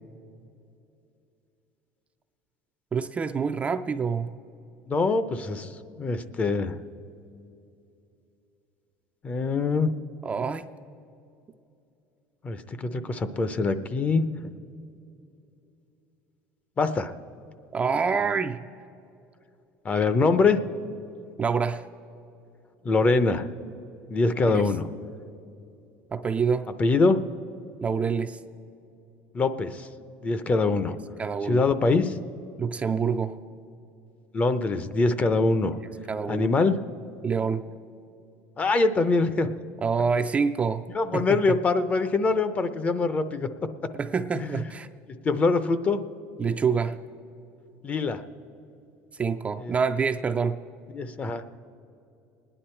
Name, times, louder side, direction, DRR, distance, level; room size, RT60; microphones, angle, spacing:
voice 1, 2.9-4.3 10.2-10.7 17.7-18.6 21.4-21.8 24.5-24.6 26.1-26.7 27.8-28.4 31.2-31.6 32.6-33.4 36.1-36.5 37.2-37.6 39.8-40.8 41.1-41.4 44.0-44.9 46.4-47.0 49.2-50.6, right 5 dB, 20° right, 7 dB, 0.4 m, -26 dB
voice 2, 4.9-5.7 6.0-6.8 9.2-9.9 12.4-14.5 16.8-17.1 19.8-20.6 22.8-23.5 24.1-24.9 26.8-27.2 29.3-29.9 30.2-31.0 31.4-32.2 34.3-35.8 36.3-36.8 38.6-39.5 40.9-43.5 44.3-44.6 45.2-46.0 47.8-48.2 49.6-49.7 50.9-51.4, left 3 dB, 25° left, 12 dB, 0.6 m, -24 dB
24.0 x 10.0 x 4.4 m, 2.7 s
cardioid pair, 140°, 6 cm